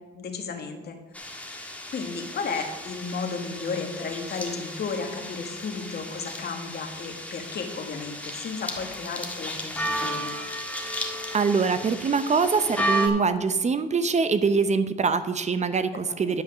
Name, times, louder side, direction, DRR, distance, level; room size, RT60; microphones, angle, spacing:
voice 1, 0.1-1.0 1.9-10.4 16.1-16.4, left 5 dB, 55° left, 4 dB, 1.6 m, -33 dB
sound 1, 1.1-13.1, equal, 5° left, 1.5 m, -34 dB
voice 2, 11.3-16.4, right 5 dB, 35° right, 11 dB, 0.7 m, -24 dB
10.5 x 5.5 x 6.1 m, 1.2 s
cardioid pair, 90°, 20 cm